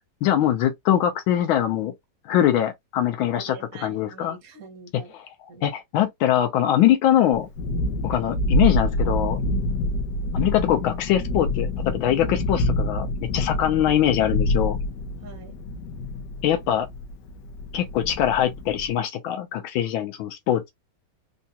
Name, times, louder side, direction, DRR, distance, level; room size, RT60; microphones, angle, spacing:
voice 1, 0.2-1.9 2.2-3.6 3.8-4.4 5.1-5.3 5.6-7.5 8.0-9.4 10.3-13.1 13.3-14.8 16.4-16.9 17.7-20.6, left 11 dB, 85° left, 1.5 m, -22 dB
voice 2, 3.3-5.1 5.5-5.7 15.2-15.6, right 4 dB, 50° right, 1.4 m, -44 dB
Thunderstorm, 7.3-18.9, left 1 dB, 70° left, 1.2 m, -27 dB
3.8 x 2.3 x 2.7 m
omnidirectional pair, 2.1 m